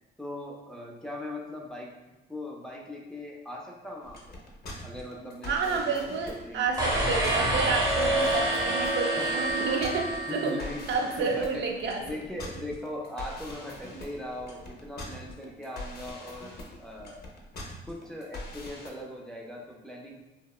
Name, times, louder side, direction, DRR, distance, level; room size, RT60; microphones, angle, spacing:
voice 1, 0.2-1.9 2.3-4.4 4.8-6.1 6.4-6.7 9.2-9.4 10.3-10.8 11.2-11.6 12.0-17.2 17.9-20.2, left 1 dB, 5° left, -2 dB, 0.4 m, -39 dB
sound 1, 4.0-18.9, left 2 dB, 50° left, 0.6 m, -43 dB
voice 2, 5.4-10.5 10.9-12.0, right 4 dB, 65° right, 1 dB, 0.5 m, -30 dB
sound 2, 6.8-11.0, right 1 dB, 20° right, 0.8 m, -27 dB
2.8 x 2.0 x 2.3 m, 1.1 s
cardioid pair, 90°, 20 cm